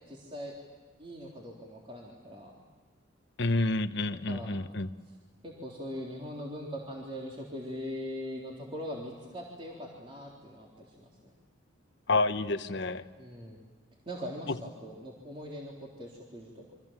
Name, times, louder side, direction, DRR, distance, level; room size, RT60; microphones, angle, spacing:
voice 1, 0.1-0.5 1.0-2.5 4.3-4.5 5.1-5.2 5.4-11.3 13.2-13.6 14.1-16.7, equal, 25° right, -3 dB, 3.7 m, -41 dB
voice 2, 3.4-4.9 12.1-13.0, left 2 dB, 60° left, 9 dB, 1.1 m, -29 dB
30.0 x 25.0 x 7.5 m, 1.5 s
head